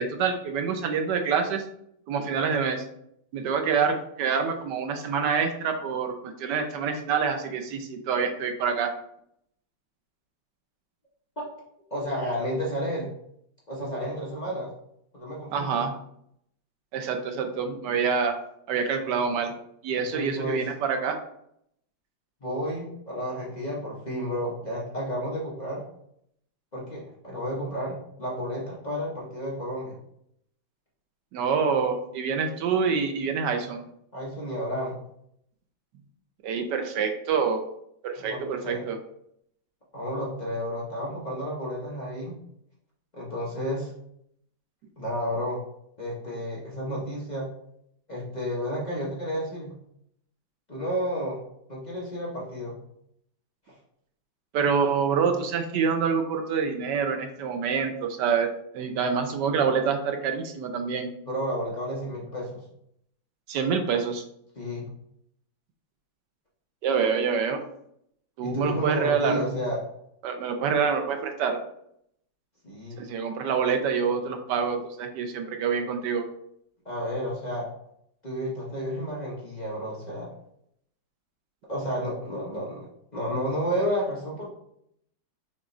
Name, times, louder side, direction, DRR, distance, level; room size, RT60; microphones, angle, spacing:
voice 1, 0.0-1.6 2.1-2.8 3.3-8.9 15.5-15.9 16.9-18.4 18.7-19.5 19.8-21.2 31.3-33.9 36.4-37.6 38.0-39.0 54.5-61.1 63.5-64.2 66.8-67.6 68.4-69.4 70.2-71.6 73.0-76.2, right 6 dB, 75° right, 5 dB, 1.1 m, -26 dB
voice 2, 11.9-13.1 13.7-14.7 15.1-15.8 19.9-20.6 22.4-25.8 26.7-30.0 34.1-35.0 38.2-38.9 39.9-42.3 43.1-43.9 45.0-45.6 46.0-47.5 48.1-49.7 50.7-51.4 51.7-52.8 61.3-62.6 64.6-64.9 68.4-69.8 72.6-73.0 76.8-77.7 78.2-80.3 81.7-84.5, equal, 35° left, -6 dB, 0.6 m, -31 dB
5.9 x 3.0 x 2.5 m, 0.73 s
omnidirectional pair, 2.1 m